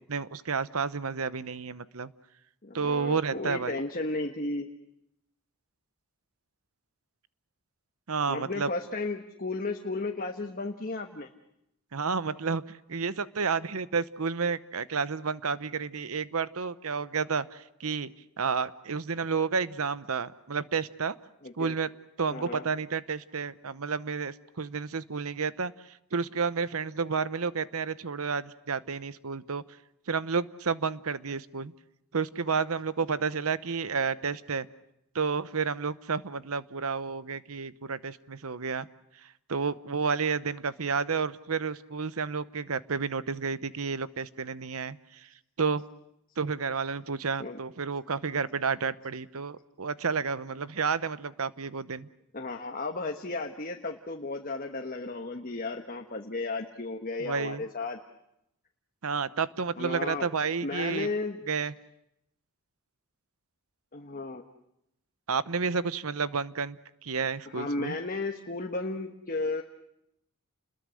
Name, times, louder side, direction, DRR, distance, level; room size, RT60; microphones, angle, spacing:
voice 1, 0.1-2.1 2.7-3.8 8.1-8.7 11.9-12.6 12.9-18.1 18.4-21.2 21.6-21.9 22.2-25.7 26.1-29.6 30.1-31.7 32.1-34.7 35.1-38.9 39.5-45.0 45.6-45.8 46.4-52.1 57.2-57.6 59.0-61.1 61.5-61.7 65.3-67.9, right 5 dB, 75° right, 15 dB, 0.9 m, -31 dB
voice 2, 2.6-4.7 8.3-11.3 21.4-21.8 22.3-22.6 47.4-47.6 52.3-58.0 59.8-60.3 60.6-61.4 63.9-64.4 67.5-69.6, left 3 dB, 40° left, 3 dB, 1.3 m, -34 dB
29.5 x 21.5 x 6.4 m, 0.80 s
head